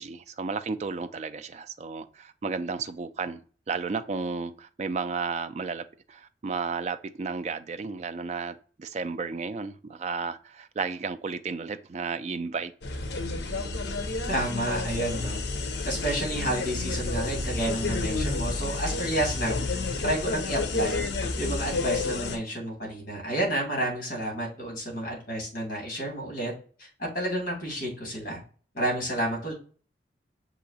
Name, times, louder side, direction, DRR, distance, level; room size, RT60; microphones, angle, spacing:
voice 1, 0.0-3.4 3.7-12.7, right 4 dB, 35° right, 0.3 m, -33 dB
sound 1, 12.8-22.4, left 3 dB, 70° left, 0.6 m, -30 dB
voice 2, 14.3-15.4 15.8-19.6 20.0-21.0 21.4-26.5 26.8-26.9 27.1-28.4 28.7-29.5, right 1 dB, 50° left, 2.3 m, -30 dB
6.1 x 2.8 x 2.6 m
head